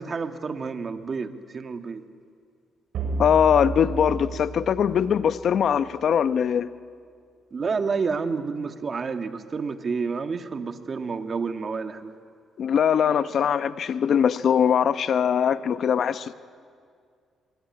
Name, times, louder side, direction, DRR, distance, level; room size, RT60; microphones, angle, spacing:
voice 1, 0.0-2.0 7.5-12.1, right 5 dB, 40° right, 1.8 m, -29 dB
sound 1, 2.9-5.6, right 3 dB, 70° right, 5.6 m, -32 dB
voice 2, 3.2-6.7 12.6-16.3, left 8 dB, 60° left, 0.9 m, -21 dB
25.0 x 23.0 x 9.8 m
cardioid pair, 90°, 0 cm